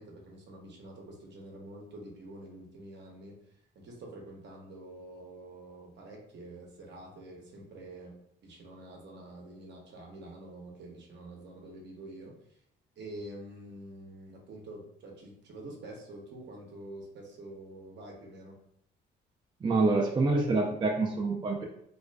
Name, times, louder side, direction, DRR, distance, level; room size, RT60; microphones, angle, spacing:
voice 1, 0.0-3.3 3.7-8.2 8.4-12.3 13.0-18.5, right 1 dB, 60° right, 0 dB, 0.7 m, -47 dB
voice 2, 19.6-21.6, right 3 dB, 25° right, -1 dB, 0.4 m, -26 dB
2.4 x 2.3 x 2.2 m, 0.74 s
cardioid pair, 90°, 20 cm